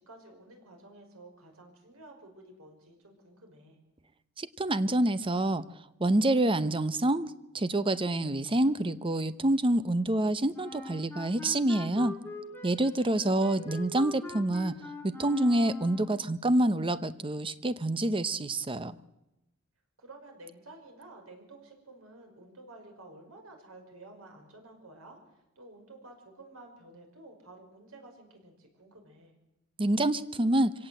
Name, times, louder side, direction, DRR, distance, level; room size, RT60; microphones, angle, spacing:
voice 1, 0.0-3.8 20.0-25.2 25.6-29.4, right 2 dB, 85° right, 3 dB, 5.7 m, -52 dB
voice 2, 4.4-5.6 6.0-12.1 12.6-14.8 15.0-19.0 29.8-30.7, right 1 dB, 25° right, 14 dB, 0.8 m, -27 dB
Wind instrument woodwind instrument, 10.5-16.3, left 2 dB, 10° left, 2.9 m, -43 dB
24.5 x 17.5 x 7.8 m, 0.94 s
head